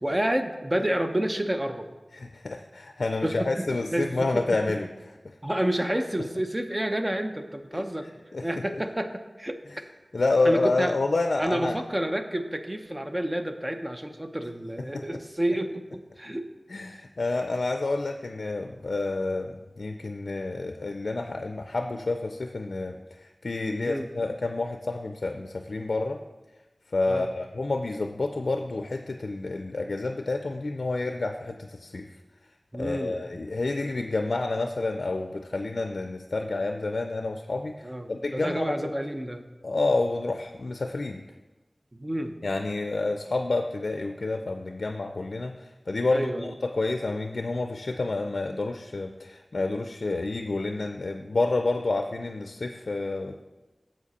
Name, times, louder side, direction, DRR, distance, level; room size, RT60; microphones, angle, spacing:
voice 1, 0.0-1.9 3.2-4.6 5.4-8.1 8.4-9.6 10.4-10.9 11.4-16.5 23.8-24.1 27.1-27.3 32.7-33.2 37.8-38.1 38.3-39.4 41.9-42.3 46.1-46.5, right 1 dB, 25° right, 7 dB, 0.7 m, -29 dB
voice 2, 2.1-4.9 7.7-7.8 8.3-8.6 10.1-11.8 14.8-15.2 16.7-26.2 26.9-32.1 32.7-38.9 39.6-41.2 42.4-53.4, left 3 dB, 80° left, 6 dB, 0.4 m, -29 dB
7.4 x 7.2 x 4.1 m, 1.1 s
wide cardioid pair, 50°, 0 cm